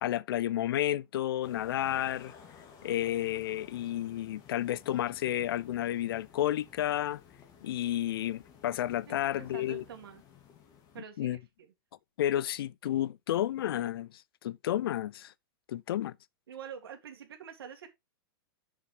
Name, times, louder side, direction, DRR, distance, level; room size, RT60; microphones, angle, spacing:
voice 1, 0.0-2.3 2.8-7.2 7.6-9.8 11.2-11.4 12.2-14.1 14.4-15.3 15.7-16.2, left 12 dB, 80° left, 0.5 m, -31 dB
sound 1, 1.4-11.0, left 7 dB, 30° left, 2.2 m, -55 dB
voice 2, 9.1-10.2 10.9-11.4 16.5-17.9, right 8 dB, 90° right, 2.2 m, -46 dB
7.3 x 6.7 x 3.2 m
hypercardioid pair, 135°, 12 cm